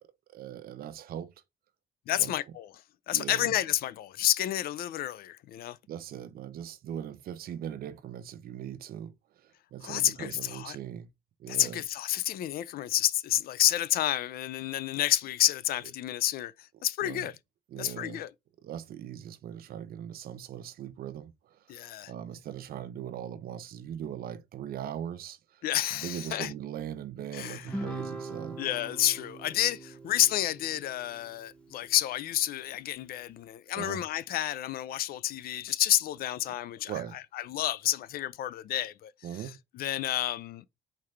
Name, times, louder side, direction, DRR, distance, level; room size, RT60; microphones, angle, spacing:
voice 1, 0.3-1.3 2.2-2.3 3.1-3.5 5.9-9.1 9.4-11.1 11.4-11.8 17.0-17.3 17.7-18.2 18.6-25.6 25.9-28.6 33.8-34.0 36.9-37.2 39.2-39.6, right 10 dB, 60° right, 0.8 m, -40 dB
voice 2, 2.1-2.7 3.1-5.8 9.8-10.8 11.5-17.3 17.8-18.3 21.7-22.1 25.6-26.5 27.3-27.7 28.6-39.1 39.7-40.6, left 13 dB, 60° left, 0.4 m, -30 dB
Guitar, 27.7-32.3, right 2 dB, 5° left, 1.0 m, -42 dB
4.3 x 3.9 x 3.1 m
cardioid pair, 110°, 17 cm